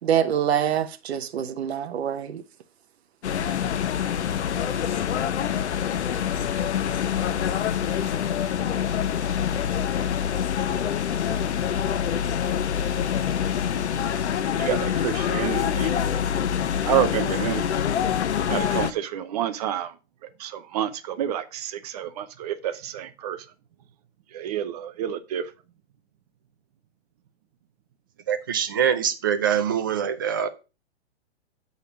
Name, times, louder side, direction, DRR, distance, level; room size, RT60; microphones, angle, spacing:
voice 1, 0.0-2.4, right 9 dB, 70° right, 0.9 m, -25 dB
sound 1, 3.2-18.9, left 8 dB, 85° left, 0.8 m, -25 dB
voice 2, 14.6-16.1 16.9-17.7 18.5-19.9 20.4-23.4 24.3-25.5, right 11 dB, 35° right, 0.7 m, -29 dB
voice 3, 28.3-30.5, right 8 dB, 20° right, 0.3 m, -24 dB
8.4 x 4.1 x 5.1 m
hypercardioid pair, 155°, 33 cm